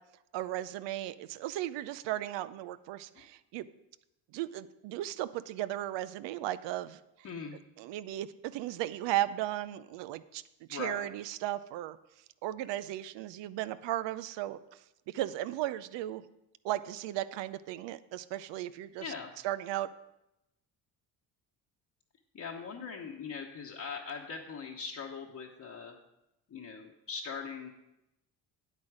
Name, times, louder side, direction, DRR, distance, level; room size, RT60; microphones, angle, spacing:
voice 1, 0.3-3.7 4.3-7.0 7.8-10.4 10.7-12.0 12.4-14.8 15.1-16.2 16.6-19.0 19.4-19.9, right 14 dB, 75° right, 15 dB, 0.6 m, -36 dB
voice 2, 7.2-7.6 10.7-11.1 19.0-19.3 22.3-26.0 26.5-27.7, left 5 dB, 40° left, -2 dB, 1.2 m, -41 dB
8.9 x 8.3 x 4.9 m, 0.88 s
supercardioid pair, 80°, 44 cm